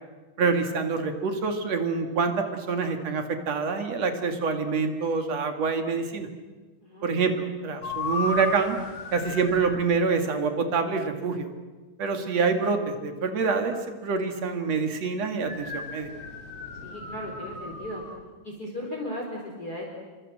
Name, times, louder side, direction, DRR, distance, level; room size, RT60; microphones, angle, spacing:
voice 1, 0.4-6.3 7.0-8.8 9.1-11.5 12.0-16.1, right 4 dB, 55° right, 6 dB, 3.1 m, -26 dB
sound 1, 7.8-9.8 15.5-18.2, left 3 dB, 45° left, 4.1 m, -35 dB
voice 2, 16.8-18.0 18.4-19.8, left 1 dB, 30° left, -1 dB, 4.5 m, -36 dB
28.0 x 25.0 x 7.8 m, 1.3 s
omnidirectional pair, 3.8 m